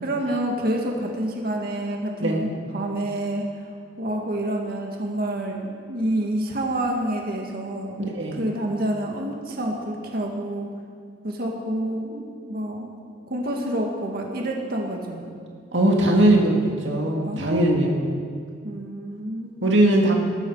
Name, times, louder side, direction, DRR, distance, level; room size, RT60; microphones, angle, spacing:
voice 1, 0.0-3.7 4.0-8.0 8.3-10.7 11.2-12.9 13.3-15.3 17.2-17.8 18.6-19.7, right 1 dB, 55° right, 0 dB, 2.0 m, -28 dB
voice 2, 8.0-8.4 15.7-18.0 19.6-20.1, right 1 dB, 80° right, 0 dB, 2.0 m, -20 dB
20.5 x 13.0 x 4.9 m, 2.1 s
head